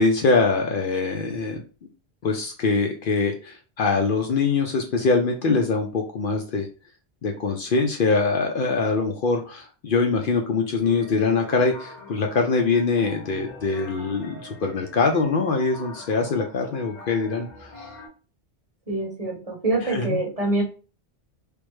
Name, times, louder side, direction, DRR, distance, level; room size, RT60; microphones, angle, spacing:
voice 1, 0.0-1.6 2.2-6.7 7.2-17.8 19.9-20.2, left 4 dB, 60° left, 3 dB, 0.6 m, -23 dB
sound 1, 10.8-18.1, left 2 dB, 40° left, 1.2 m, -44 dB
voice 2, 18.9-20.6, right 2 dB, 35° right, -1 dB, 0.9 m, -25 dB
3.4 x 2.1 x 3.1 m, 0.35 s
omnidirectional pair, 1.1 m